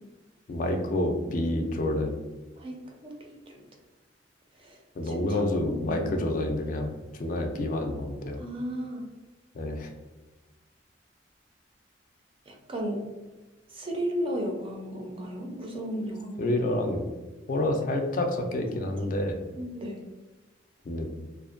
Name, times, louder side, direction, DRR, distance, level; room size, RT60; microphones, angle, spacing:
voice 1, 0.5-2.2 5.0-8.4 9.5-9.9 16.4-17.1 17.5-19.4 20.9-21.1, left 1 dB, 45° left, 3 dB, 0.3 m, -28 dB
voice 2, 2.6-3.6 4.6-6.1 8.4-9.1 12.5-13.0 13.7-16.6 18.7-19.1 19.6-20.0, equal, 30° right, 1 dB, 0.4 m, -35 dB
2.5 x 2.1 x 2.4 m, 1.2 s
head